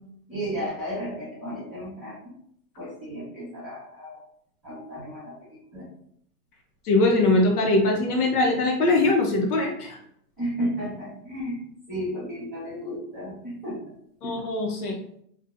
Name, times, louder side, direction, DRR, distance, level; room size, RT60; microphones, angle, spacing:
voice 1, 0.3-2.2 2.8-4.2 4.6-5.3 5.7-5.8 10.4-11.6 11.9-13.8 14.2-14.4, equal, ahead, -15 dB, 1.1 m, -33 dB
voice 2, 6.8-10.0 14.2-14.9, left 2 dB, 70° left, 1 dB, 0.8 m, -22 dB
2.5 x 2.3 x 2.5 m, 0.69 s
supercardioid pair, 175°, 47 cm